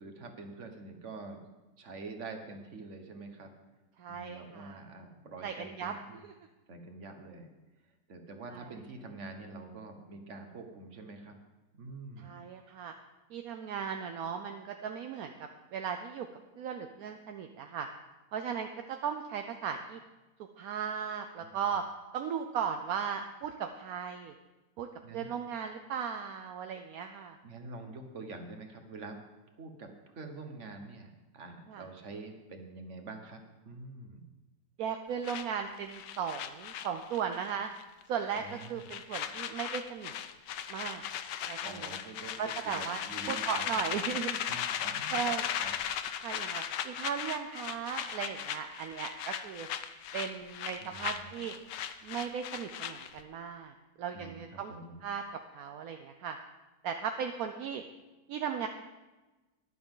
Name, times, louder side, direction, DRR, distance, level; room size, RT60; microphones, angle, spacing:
voice 1, 0.0-1.4 1.8-3.5 4.1-6.2 6.7-7.5 7.8-11.4 11.7-12.4 21.4-21.5 25.0-25.3 27.4-29.2 29.5-34.3 38.3-39.0 41.6-44.2 44.5-45.3 45.6-45.7 50.8-51.4 54.1-55.0, right 3 dB, 45° right, 5 dB, 1.6 m, -46 dB
voice 2, 4.0-4.8 5.4-5.9 6.2-6.3 8.5-8.6 12.2-12.9 13.3-15.3 15.7-16.3 16.6-17.9 18.3-20.0 20.6-21.8 22.1-24.3 24.8-24.9 25.1-27.4 31.7-31.8 34.8-37.7 38.1-40.1 40.7-41.0 41.5-42.0 42.4-43.0 43.3-44.4 45.1-45.5 46.2-49.7 50.1-51.5 52.0-54.7 55.0-55.2 55.5-56.4 56.8-57.8 58.3-58.7, right 7 dB, 65° right, 6 dB, 1.0 m, -36 dB
sound 1, 35.2-37.5 37.8-38.0 38.3-53.2, left 9 dB, 75° left, 1.3 m, -37 dB
14.0 x 11.0 x 3.8 m, 1.1 s
omnidirectional pair, 2.0 m